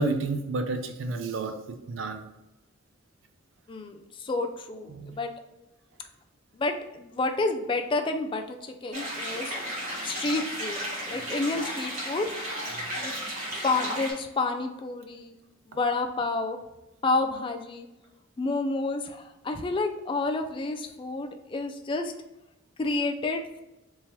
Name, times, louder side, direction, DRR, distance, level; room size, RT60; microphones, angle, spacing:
voice 1, 0.0-1.5 1.9-2.2 4.9-5.2 11.2-11.3, right 3 dB, 70° right, 6 dB, 0.5 m, -30 dB
voice 2, 3.7-5.3 6.5-9.5 10.1-10.8 11.1-12.3 13.0-13.1 13.6-15.4 15.7-16.6 17.0-17.9 18.4-22.1 22.8-23.6, left 3 dB, 25° left, 5 dB, 0.3 m, -29 dB
sound 1, 8.9-14.1, equal, 40° right, 1.2 m, -34 dB
3.6 x 2.8 x 3.0 m, 0.98 s
head